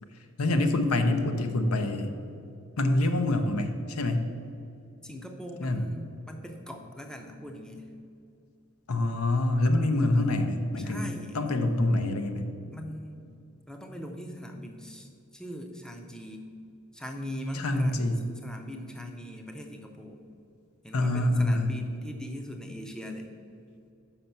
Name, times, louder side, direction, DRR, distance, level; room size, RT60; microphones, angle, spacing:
voice 1, 0.4-2.1 2.8-4.3 5.6-5.9 8.9-11.1 11.3-12.5 17.5-18.2 20.9-21.7, left 2 dB, 75° left, 7 dB, 0.7 m, -26 dB
voice 2, 5.0-7.9 9.8-10.2 10.8-11.4 12.7-13.3 13.7-16.5 16.9-18.0 18.4-20.2 20.8-23.3, equal, 5° left, 3 dB, 0.5 m, -41 dB
5.8 x 5.3 x 6.8 m, 2.5 s
head